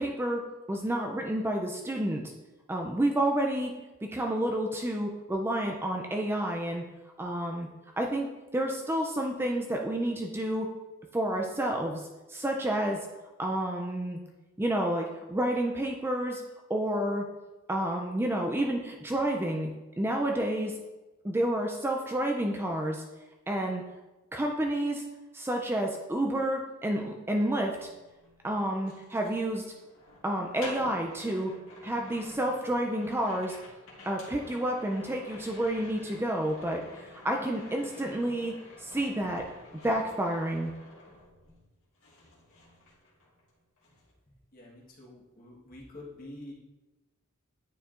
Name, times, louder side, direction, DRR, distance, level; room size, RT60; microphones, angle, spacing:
voice 1, 0.0-2.3 2.7-3.7 4.0-6.8 7.2-7.7 8.0-10.7 11.1-13.1 13.4-14.2 14.6-16.4 16.7-17.2 17.7-19.7 20.0-20.8 21.2-23.0 23.5-23.8 24.3-25.0 25.3-27.9 28.4-29.7 30.2-31.5 31.8-33.6 34.1-39.4 39.8-40.7, right 1 dB, 10° right, 1 dB, 0.3 m, -30 dB
sound 1, 27.7-41.7 42.0-43.5 43.8-44.1, left 1 dB, 75° left, 1.6 m, -49 dB
voice 2, 44.5-46.5, left 1 dB, 40° left, -3 dB, 1.3 m, -47 dB
9.4 x 4.5 x 2.5 m, 1.1 s
head